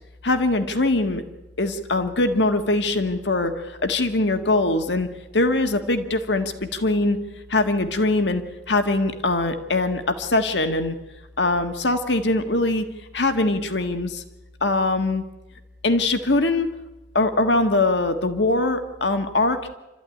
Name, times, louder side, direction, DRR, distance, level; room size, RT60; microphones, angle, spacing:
voice 1, 0.2-1.2 1.6-5.1 5.3-7.2 7.5-11.0 11.4-12.8 13.1-14.2 14.6-15.2 15.8-16.7 17.1-19.6, left 2 dB, 75° left, 7 dB, 1.7 m, -22 dB
28.5 x 13.5 x 10.0 m, 1.1 s
head